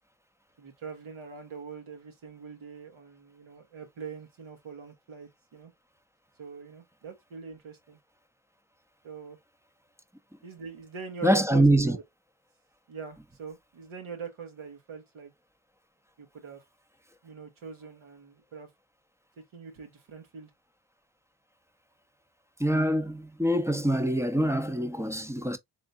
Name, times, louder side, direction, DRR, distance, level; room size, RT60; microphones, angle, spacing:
voice 1, 0.6-5.7 6.4-8.0 9.0-9.4 10.4-12.0 12.9-15.3 16.2-16.6 17.2-18.7 19.4-20.5, right 6 dB, 80° right, 1.4 m, -43 dB
voice 2, 11.2-12.0 22.6-25.6, right 1 dB, 5° right, 0.6 m, -24 dB
3.7 x 3.4 x 2.5 m
cardioid pair, 65°, 48 cm